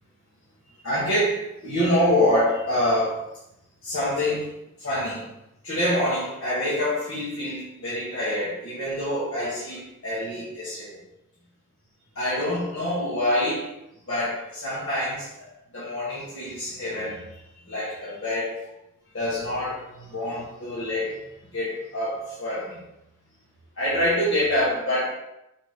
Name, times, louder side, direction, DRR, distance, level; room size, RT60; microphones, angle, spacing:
voice 1, 0.8-3.3 3.8-5.3 5.6-11.0 12.2-13.7 14.1-17.4 17.6-18.7 19.1-22.8 23.8-25.1, left 1 dB, 65° left, -9 dB, 1.8 m, -26 dB
5.0 x 3.9 x 5.0 m, 0.87 s
head